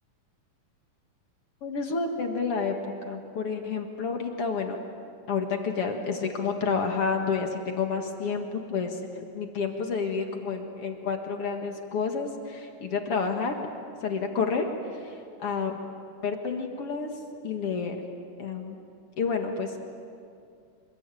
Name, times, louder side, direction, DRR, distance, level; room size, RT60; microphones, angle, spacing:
voice 1, 1.6-4.8 5.3-9.0 9.3-13.6 14.0-14.7 14.9-15.9 16.2-17.1 17.4-18.0 18.4-18.8 19.2-19.8, left 5 dB, 50° left, 4 dB, 2.3 m, -29 dB
27.0 x 21.5 x 9.2 m, 2.5 s
omnidirectional pair, 3.8 m